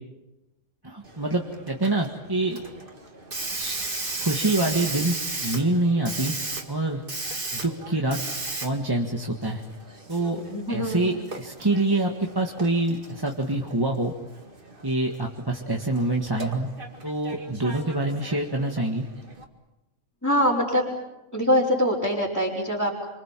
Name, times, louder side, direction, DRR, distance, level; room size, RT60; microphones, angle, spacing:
voice 1, 0.8-2.7 3.5-3.9 4.2-6.4 6.7-7.0 7.5-8.2 8.6-9.6 10.1-10.4 10.7-14.1 14.8-16.7 17.0-19.1, right 2 dB, 20° right, 1 dB, 1.7 m, -26 dB
Hiss, 1.0-19.4, right 2 dB, 40° right, 2.4 m, -37 dB
voice 2, 10.3-11.1 11.9-12.0 20.2-20.9 21.3-23.1, equal, 10° left, -8 dB, 4.8 m, -24 dB
28.5 x 25.0 x 7.6 m, 0.99 s
omnidirectional pair, 1.3 m